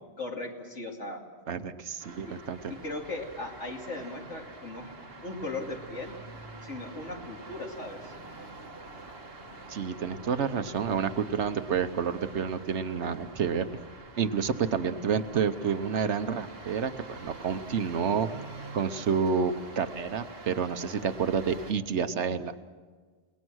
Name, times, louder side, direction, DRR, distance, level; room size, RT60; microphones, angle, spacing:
voice 1, 0.2-1.2 2.2-2.3 2.7-4.9 5.2-6.1 6.6-8.1, left 2 dB, 80° left, 0 dB, 3.1 m, -38 dB
voice 2, 1.5-2.6 9.7-13.7 14.2-18.3 18.7-22.5, right 6 dB, 75° right, 10 dB, 1.2 m, -29 dB
sound 1, 2.0-21.7, right 2 dB, 55° right, 2.3 m, -46 dB
30.0 x 19.0 x 6.3 m, 1.5 s
omnidirectional pair, 1.2 m